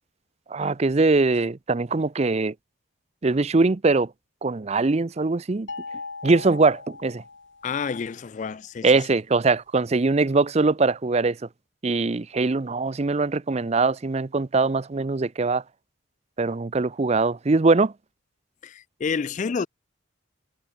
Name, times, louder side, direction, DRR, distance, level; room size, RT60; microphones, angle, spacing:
voice 1, 0.5-2.5 3.2-4.1 4.4-5.7 6.2-7.2 8.8-11.4 11.8-15.6 16.4-17.9, right 3 dB, 30° right, 0.5 m, -22 dB
sound 1, 5.7-7.9, left 4 dB, 60° left, 2.5 m, -39 dB
voice 2, 7.6-8.9 18.6-19.7, left 5 dB, 35° left, 0.3 m, -29 dB
head